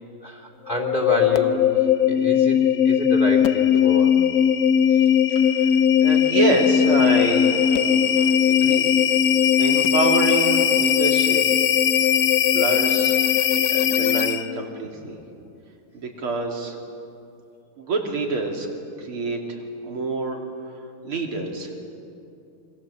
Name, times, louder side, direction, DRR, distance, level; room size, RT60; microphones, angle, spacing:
voice 1, 0.2-1.7 2.1-4.2, equal, 20° left, 4 dB, 3.4 m, -28 dB
sound 1, 0.7-14.6, left 9 dB, 70° left, 0.9 m, -19 dB
voice 2, 5.4-5.8 6.0-8.9 9.6-11.4 12.4-15.2 15.9-16.8 17.8-18.7 19.0-20.4 21.0-21.8, right 2 dB, 80° right, 1 dB, 3.7 m, -27 dB
27.0 x 24.0 x 7.6 m, 2.6 s
omnidirectional pair, 2.3 m